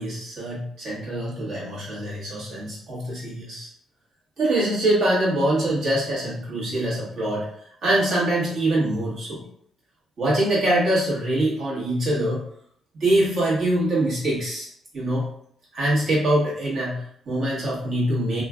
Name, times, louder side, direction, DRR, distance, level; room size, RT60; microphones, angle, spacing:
voice 1, 0.0-3.7 4.4-7.5 7.8-9.4 10.2-12.4 12.9-14.7 14.9-15.3 15.7-18.4, right 1 dB, 60° right, -6 dB, 1.5 m, -24 dB
3.0 x 2.4 x 2.4 m, 0.65 s
cardioid pair, 90°, 0 cm